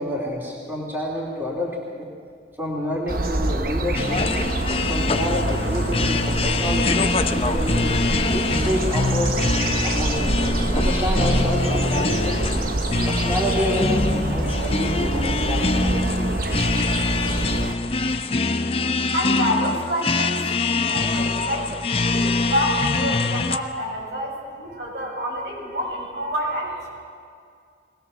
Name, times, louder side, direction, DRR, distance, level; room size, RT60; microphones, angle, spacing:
voice 1, 0.0-2.1 2.6-4.2 4.7-8.0 8.3-9.4 9.8-12.5 13.1-16.6, equal, 15° right, -4 dB, 3.0 m, -28 dB
sound 1, 3.1-17.8, right 2 dB, 55° right, 1.0 m, -26 dB
sound 2, 3.9-23.6, left 3 dB, 35° left, 0.7 m, -24 dB
voice 2, 18.1-18.7 19.1-26.9, equal, 75° right, -3 dB, 6.8 m, -28 dB
21.5 x 19.0 x 7.0 m, 2.3 s
head